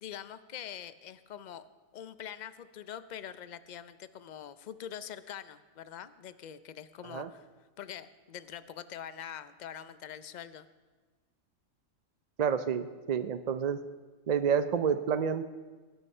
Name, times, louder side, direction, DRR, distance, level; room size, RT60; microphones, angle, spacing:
voice 1, 0.0-1.7 1.9-7.4 7.8-10.7, left 9 dB, 50° left, 13 dB, 0.5 m, -44 dB
voice 2, 12.4-13.8 14.3-15.4, right 7 dB, 55° right, 10 dB, 0.4 m, -29 dB
17.5 x 10.0 x 5.5 m, 1.3 s
omnidirectional pair, 1.4 m